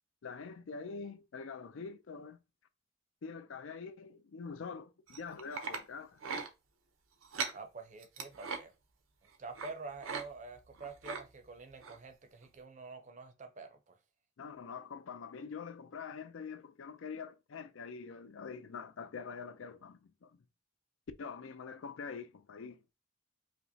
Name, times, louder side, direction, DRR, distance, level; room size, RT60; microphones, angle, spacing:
voice 1, 0.2-2.4 3.2-6.2 14.4-20.3 21.2-22.9, left 5 dB, 75° left, 0.4 m, -45 dB
sound 1, 5.1-5.8 6.2-6.5 7.2-7.6 8.0-8.6 9.5-9.7 10.0-10.2 10.5-11.2 11.8-12.0 12.4-12.5, right 5 dB, 85° right, 0.6 m, -39 dB
voice 2, 7.5-8.7 9.4-14.0, right 4 dB, 35° right, 0.5 m, -47 dB
4.9 x 2.0 x 2.7 m
head